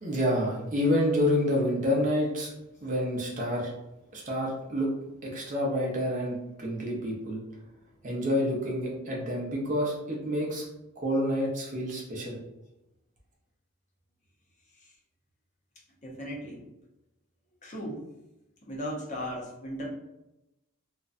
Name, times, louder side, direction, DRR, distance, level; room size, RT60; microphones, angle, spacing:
voice 1, 0.0-2.5 2.8-3.7 4.1-4.9 5.2-7.4 8.0-10.6 11.0-12.4, equal, 35° right, -2 dB, 0.5 m, -28 dB
voice 2, 16.0-16.6 17.6-18.0 18.6-19.9, equal, 35° left, -3 dB, 0.5 m, -37 dB
2.5 x 2.1 x 2.4 m, 0.94 s
head